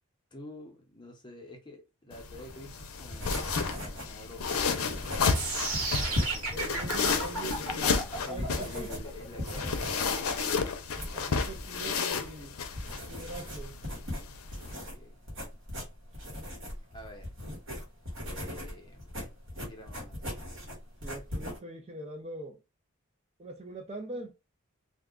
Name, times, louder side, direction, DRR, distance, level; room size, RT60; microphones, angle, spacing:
voice 1, 0.3-5.0 5.7-6.5 8.2-10.7 11.1-11.6 14.8-15.2 16.9-17.3 18.2-19.3 19.7-20.4, left 1 dB, 20° left, 0.7 m, -49 dB
sound 1, 2.1-14.7, left 5 dB, 80° left, 0.5 m, -32 dB
sound 2, 2.3-21.6, left 1 dB, 60° right, 1.4 m, -39 dB
sound 3, 5.3-11.4, right 3 dB, 80° right, 1.3 m, -34 dB
voice 2, 6.5-8.9 11.0-12.6 13.1-13.8 21.0-22.6 23.4-24.3, right 2 dB, 30° right, 0.4 m, -42 dB
2.5 x 2.3 x 3.6 m
head